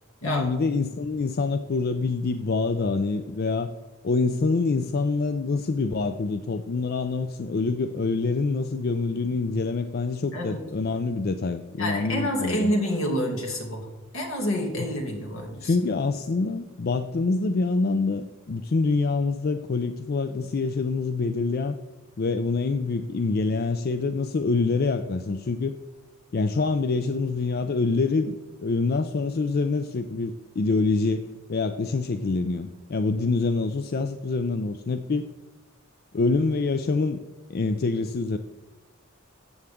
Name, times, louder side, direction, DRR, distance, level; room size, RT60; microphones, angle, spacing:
voice 1, 0.2-3.7 4.0-12.7 14.8-14.9 15.6-21.8 22.2-25.8 26.3-35.3 36.1-37.2 37.5-38.4, left 3 dB, 45° left, 9 dB, 0.4 m, -26 dB
voice 2, 10.3-10.6 11.8-13.9 14.1-15.8, equal, 70° left, 1 dB, 2.4 m, -28 dB
14.0 x 7.9 x 3.6 m, 1.2 s
head